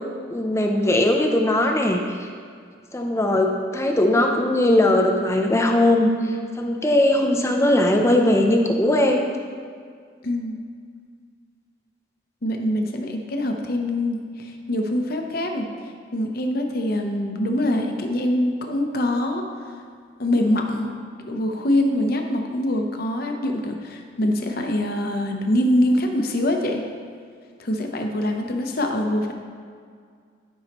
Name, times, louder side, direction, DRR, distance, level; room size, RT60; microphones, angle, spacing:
voice 1, 0.3-2.3 2.9-9.3, left 1 dB, 15° left, 3 dB, 0.5 m, -19 dB
voice 2, 10.2-10.6 12.4-15.7 16.1-19.5 20.2-20.9 21.3-26.8 27.6-29.3, left 1 dB, 50° left, 3 dB, 0.8 m, -24 dB
12.0 x 5.5 x 3.0 m, 2.1 s
head